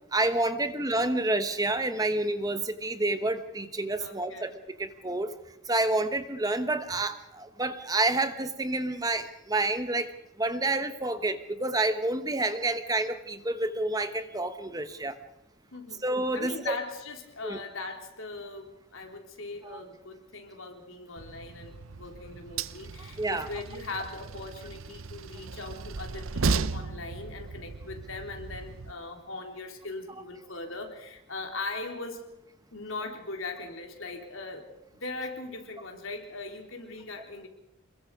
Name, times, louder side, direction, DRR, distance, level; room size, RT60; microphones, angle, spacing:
voice 1, 0.1-5.3 5.7-15.2 16.0-16.8 17.4-17.6 19.6-19.8 23.2-23.5 26.8-26.9, right 2 dB, 20° right, 10 dB, 1.1 m, -29 dB
voice 2, 4.0-4.5 15.7-16.0 16.3-32.3 32.7-34.7 35.0-37.5, left 3 dB, 75° left, 3 dB, 3.7 m, -40 dB
Train, 21.2-28.9, right 4 dB, 85° right, 0.8 m, -35 dB
27.5 x 22.0 x 4.9 m, 0.87 s
head